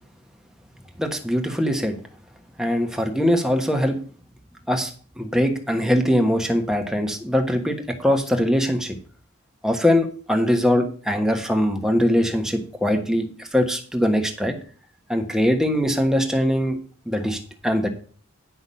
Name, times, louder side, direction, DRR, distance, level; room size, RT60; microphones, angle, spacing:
voice 1, 1.0-1.9 2.6-4.0 4.7-4.9 5.2-9.0 9.6-14.5 15.1-16.8 17.1-17.9, equal, 5° right, 4 dB, 1.2 m, -22 dB
9.9 x 5.8 x 5.6 m, 0.42 s
head